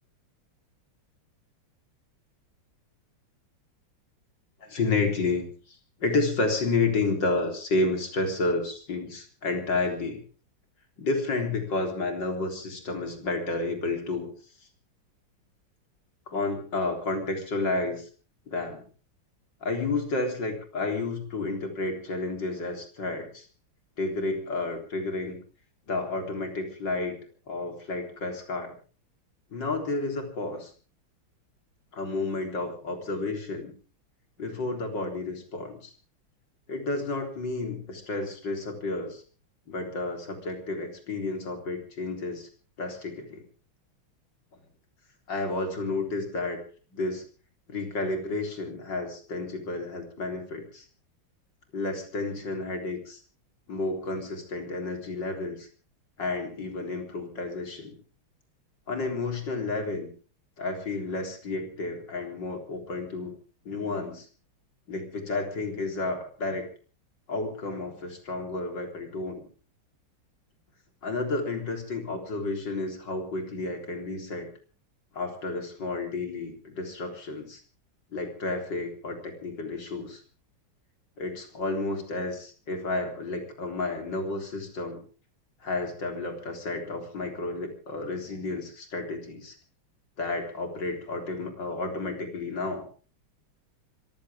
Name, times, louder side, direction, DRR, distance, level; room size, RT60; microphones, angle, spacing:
voice 1, 4.6-10.2 11.0-14.3 16.3-18.1 18.5-18.8 19.6-23.5 24.0-25.4 25.9-27.2 27.5-28.7 29.5-30.7 31.9-33.7 34.4-35.9 36.7-39.2 39.7-42.5 42.8-43.4 45.3-46.6 46.9-47.2 47.7-50.9 51.7-53.2 53.7-55.7 56.2-58.0 58.9-60.1 60.6-63.3 63.7-64.3 64.9-66.7 67.3-69.4 71.0-74.5 75.1-77.6 78.1-80.2 81.2-85.0 85.6-89.6 90.2-92.9, left 3 dB, 55° left, 4 dB, 4.4 m, -31 dB
25.5 x 15.0 x 3.6 m, 0.38 s
omnidirectional pair, 2.3 m